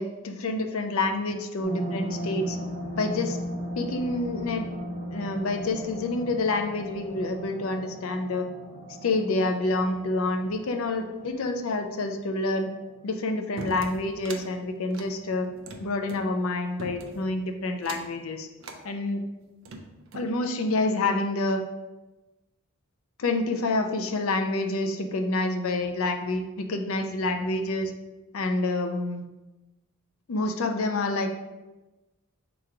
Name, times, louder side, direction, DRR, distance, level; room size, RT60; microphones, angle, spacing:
voice 1, 0.0-2.6 2.9-3.4 3.8-4.7 5.1-8.5 9.0-12.7 13.0-15.5 15.8-18.5 18.8-19.2 20.1-21.6 23.2-27.9 28.3-29.2 30.3-31.4, left 2 dB, 75° left, 5 dB, 0.5 m, -28 dB
sound 1, 1.6-12.4 12.9-13.0, equal, 35° right, 1.1 m, -37 dB
sound 2, 13.6-14.5 14.9-16.3 16.8-17.3 17.8-18.2 18.6-18.8 19.4-20.3, right 3 dB, 60° right, 0.5 m, -40 dB
3.7 x 3.0 x 4.6 m, 1.1 s
head